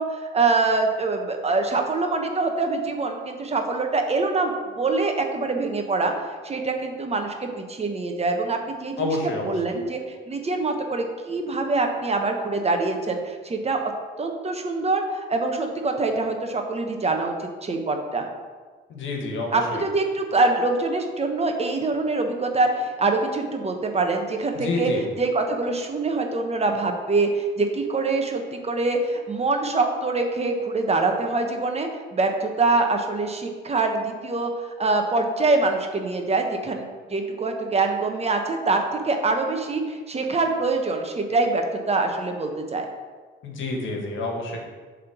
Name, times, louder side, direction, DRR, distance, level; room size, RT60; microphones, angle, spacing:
voice 1, 0.0-6.1 6.4-13.8 14.2-18.2 19.5-24.9 25.2-36.8 37.1-42.9, right 3 dB, 30° right, 4 dB, 1.1 m, -24 dB
voice 2, 9.0-9.5 18.9-19.8 24.5-25.0 43.4-44.6, left 2 dB, 80° left, 1 dB, 1.5 m, -28 dB
7.3 x 3.7 x 6.0 m, 1.5 s
cardioid pair, 90°, 20 cm